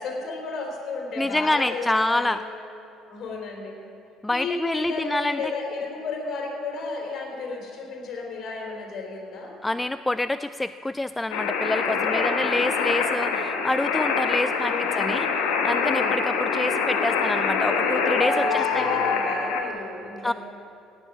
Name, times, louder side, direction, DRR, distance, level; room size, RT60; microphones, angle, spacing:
voice 1, 0.0-2.4 3.1-3.8 4.3-9.5 11.8-12.5 13.1-13.4 14.5-15.2 15.7-16.2 17.6-20.3, left 3 dB, 45° left, 0 dB, 3.8 m, -33 dB
voice 2, 1.2-2.4 4.2-5.4 9.6-15.3 15.6-18.8 20.2-20.3, left 2 dB, 10° left, 13 dB, 0.3 m, -27 dB
sound 1, 11.3-19.6, left 5 dB, 65° left, 1.2 m, -25 dB
17.0 x 9.6 x 7.3 m, 2.8 s
figure-of-eight pair, 55°, 0 cm